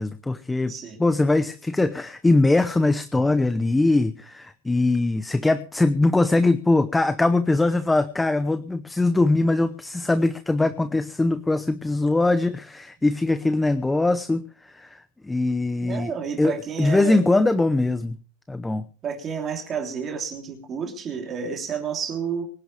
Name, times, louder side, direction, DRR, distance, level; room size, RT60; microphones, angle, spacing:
voice 1, 0.0-0.7 1.0-16.1 16.4-16.5 16.8-18.2 18.5-18.9, left 2 dB, 5° left, 11 dB, 0.7 m, -22 dB
voice 2, 0.7-1.0 15.8-17.3 19.0-22.4, right 6 dB, 25° right, 3 dB, 3.2 m, -30 dB
24.5 x 11.0 x 3.4 m, 0.40 s
supercardioid pair, 155°, 0 cm